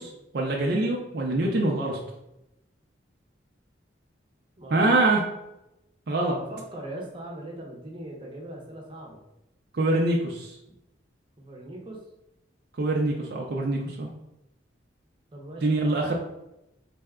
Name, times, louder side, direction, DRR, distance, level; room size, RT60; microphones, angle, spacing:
voice 1, 0.0-2.0 4.7-5.2 6.1-6.4 9.7-10.6 12.8-14.1 15.6-16.1, right 2 dB, 55° right, -2 dB, 0.5 m, -24 dB
voice 2, 4.6-5.1 6.5-9.2 11.4-12.0 15.3-16.1, right 1 dB, 25° right, -1 dB, 0.7 m, -40 dB
4.1 x 2.2 x 3.5 m, 0.88 s
head